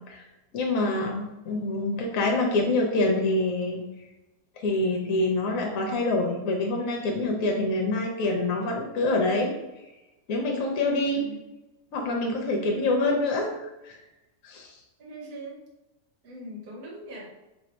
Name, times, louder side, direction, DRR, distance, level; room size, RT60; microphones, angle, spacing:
voice 1, 0.5-3.8 4.6-9.5 10.3-11.2 11.9-14.0 14.4-14.7, left 2 dB, 65° left, 0 dB, 1.1 m, -26 dB
voice 2, 11.0-11.4 15.0-15.6 16.2-17.3, equal, 70° right, -3 dB, 1.5 m, -41 dB
3.2 x 2.7 x 4.3 m, 0.99 s
omnidirectional pair, 1.7 m